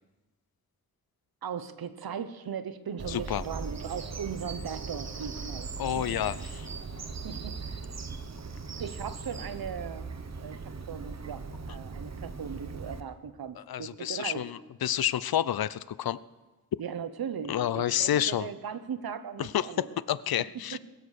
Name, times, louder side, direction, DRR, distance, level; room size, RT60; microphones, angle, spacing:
voice 1, 1.4-6.2 7.2-7.6 8.8-10.1 10.4-14.4 16.8-19.9 20.7-20.8, right 7 dB, 85° right, 11 dB, 0.9 m, -38 dB
Bird vocalization bird call bird song, 3.0-13.0, right 4 dB, 45° right, 1.0 m, -39 dB
voice 2, 3.1-3.4 5.8-6.7 13.7-16.2 17.5-18.5 19.4-20.8, left 11 dB, 85° left, 18 dB, 0.5 m, -29 dB
22.0 x 7.4 x 6.4 m, 1.1 s
wide cardioid pair, 95°, 35 cm